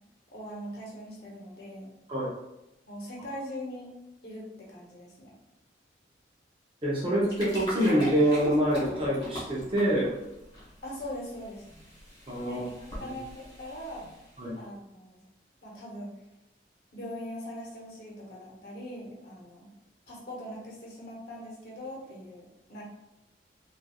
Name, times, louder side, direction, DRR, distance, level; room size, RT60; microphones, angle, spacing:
voice 1, 0.3-1.9 2.9-3.9 4.2-5.3 10.8-11.6 12.4-12.7 13.0-14.1 14.6-15.2 15.6-16.1 16.9-19.7 20.1-22.8, equal, 60° left, -3 dB, 0.8 m, -41 dB
voice 2, 6.8-10.2 12.3-12.6 13.0-13.1 14.4-14.5, equal, 30° right, -5 dB, 0.6 m, -26 dB
sound 1, 7.1-14.5, equal, 25° left, 1.0 m, -42 dB
3.1 x 2.4 x 2.3 m, 0.91 s
head